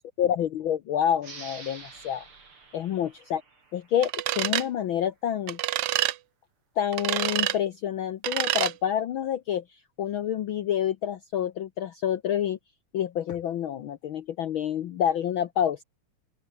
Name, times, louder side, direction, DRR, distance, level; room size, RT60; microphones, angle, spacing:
voice 1, 0.0-2.2 2.7-3.4 3.7-5.6 6.8-9.6 10.0-12.6 12.9-15.8, left 10 dB, 70° left, 1.2 m, -28 dB
sound 1, 1.2-4.5, right 4 dB, 45° right, 4.8 m, -47 dB
sound 2, 4.0-4.7 5.5-6.2 6.9-7.6 8.2-8.7, right 15 dB, 70° right, 1.5 m, -27 dB
open air
omnidirectional pair, 3.3 m